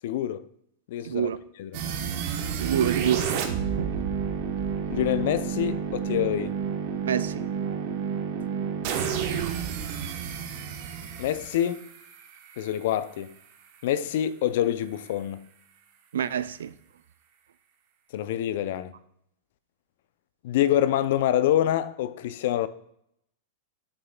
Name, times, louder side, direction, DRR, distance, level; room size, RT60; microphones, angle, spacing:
voice 1, 0.0-0.4 0.9-1.3 1.6-1.8 4.9-6.5 11.2-11.9 12.6-13.3 13.8-15.5 18.1-18.9 20.4-22.7, left 11 dB, 65° left, 0.4 m, -26 dB
voice 2, 1.0-1.4 2.5-3.2 3.8-4.0 7.1-7.9 16.1-16.7, right 9 dB, 80° right, 0.3 m, -28 dB
sound 1, 1.7-12.7, right 7 dB, 55° right, 0.8 m, -30 dB
7.8 x 5.8 x 2.2 m
hypercardioid pair, 110°, 0 cm